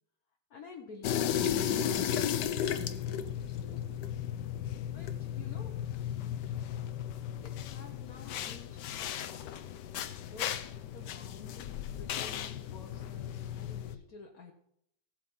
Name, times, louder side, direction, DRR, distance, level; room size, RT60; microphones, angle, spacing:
voice 1, 0.5-4.1 4.9-5.8 7.4-9.6 10.2-14.5, left 4 dB, 55° left, 2 dB, 1.5 m, -51 dB
sound 1, 1.0-14.0, left 9 dB, 70° left, 1.3 m, -35 dB
16.5 x 8.0 x 5.4 m, 0.75 s
omnidirectional pair, 2.0 m